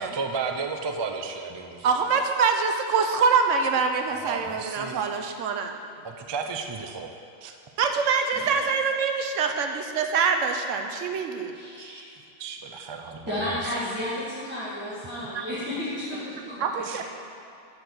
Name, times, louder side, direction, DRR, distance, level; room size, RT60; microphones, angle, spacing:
voice 1, 0.0-2.2 4.1-5.0 6.0-7.1 7.4-7.5 12.4-13.8 15.2-15.3 16.8-17.0, right 5 dB, 45° right, 4 dB, 0.3 m, -34 dB
voice 2, 1.8-5.8 7.8-11.9 15.3-15.5 16.6-17.0, right 5 dB, 80° right, 5 dB, 1.0 m, -25 dB
voice 3, 11.5-12.0 13.3-16.8, left 1 dB, 10° right, -12 dB, 1.6 m, -32 dB
7.5 x 4.9 x 7.0 m, 2.6 s
omnidirectional pair, 1.3 m